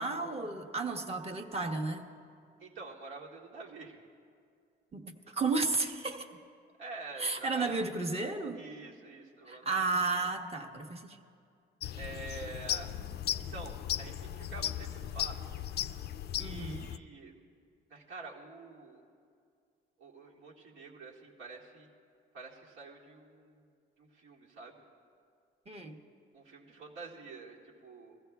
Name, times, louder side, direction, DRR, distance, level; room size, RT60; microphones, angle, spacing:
voice 1, 0.0-2.1 4.9-6.3 7.2-8.6 9.5-11.2 16.4-16.9 25.7-26.0, right 3 dB, 30° right, 3 dB, 1.1 m, -33 dB
voice 2, 2.6-4.0 6.8-7.8 8.6-9.7 10.0-10.3 11.9-12.9 13.5-15.4 16.4-17.3 17.9-19.0 20.0-21.9 22.3-23.7 24.0-24.8 26.3-28.2, right 3 dB, 85° right, -3 dB, 2.0 m, -47 dB
sound 1, 11.8-17.0, left 11 dB, 55° left, 0.4 m, -37 dB
21.5 x 15.0 x 2.4 m, 2.2 s
cardioid pair, 90°, 20 cm